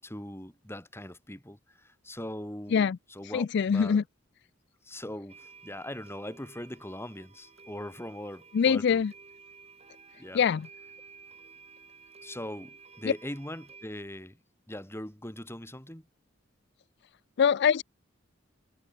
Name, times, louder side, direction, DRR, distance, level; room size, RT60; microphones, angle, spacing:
voice 1, 0.0-4.0 4.8-9.0 10.2-10.5 12.2-14.4 14.7-16.1, left 1 dB, 10° left, 7.0 m, -41 dB
voice 2, 3.3-4.0 8.5-9.1 10.3-10.7 17.4-17.8, left 7 dB, 55° left, 0.4 m, -23 dB
sound 1, 5.3-13.9, right 5 dB, 30° right, 2.9 m, -53 dB
head